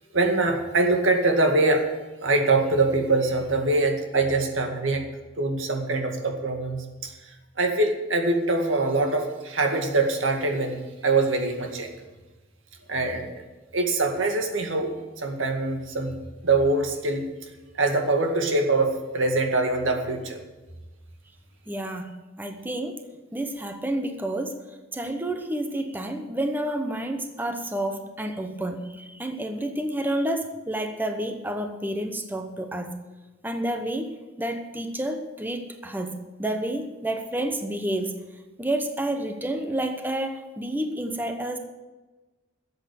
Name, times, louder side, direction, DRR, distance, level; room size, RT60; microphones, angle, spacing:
voice 1, 0.1-1.9 2.2-5.1 5.4-7.3 7.6-11.9 12.9-13.3 13.7-17.3 17.8-20.4, right 2 dB, 80° right, 4 dB, 2.1 m, -24 dB
voice 2, 21.7-23.0 23.3-24.6 24.9-33.0 33.4-38.2 38.6-41.6, right 1 dB, 10° right, 5 dB, 0.9 m, -30 dB
13.0 x 8.0 x 8.5 m, 1.2 s
head